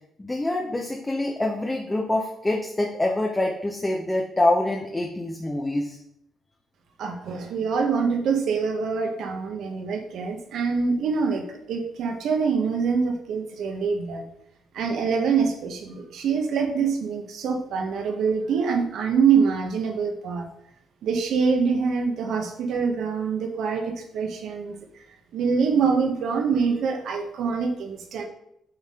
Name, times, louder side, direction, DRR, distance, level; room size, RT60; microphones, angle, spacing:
voice 1, 0.2-6.0, left 1 dB, 15° left, 0 dB, 0.8 m, -25 dB
voice 2, 7.0-14.2 14.7-20.5 21.0-24.7 25.3-28.2, right 5 dB, 75° right, 4 dB, 1.1 m, -25 dB
7.7 x 4.1 x 3.7 m, 0.77 s
cardioid pair, 90°, 0 cm